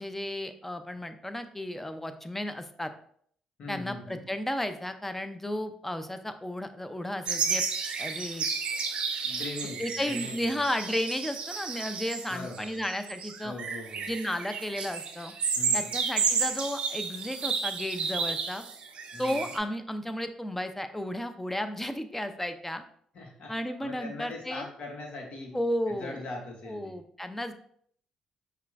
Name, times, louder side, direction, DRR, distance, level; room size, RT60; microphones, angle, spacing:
voice 1, 0.0-2.9 3.7-7.6 8.0-8.5 9.8-13.5 14.1-15.3 15.7-18.6 19.2-22.8 23.5-24.7 25.5-26.2 26.7-27.5, left 1 dB, 10° left, 9 dB, 0.5 m, -33 dB
voice 2, 3.6-4.2 9.2-10.5 12.3-12.7 13.4-14.1 15.5-15.9 19.1-19.5 23.1-23.5 23.8-25.6 25.9-27.0, left 2 dB, 60° left, 1 dB, 1.1 m, -41 dB
sound 1, 7.3-19.6, right 5 dB, 55° right, 0.5 m, -32 dB
5.6 x 2.3 x 2.5 m, 0.62 s
hypercardioid pair, 55°, 2 cm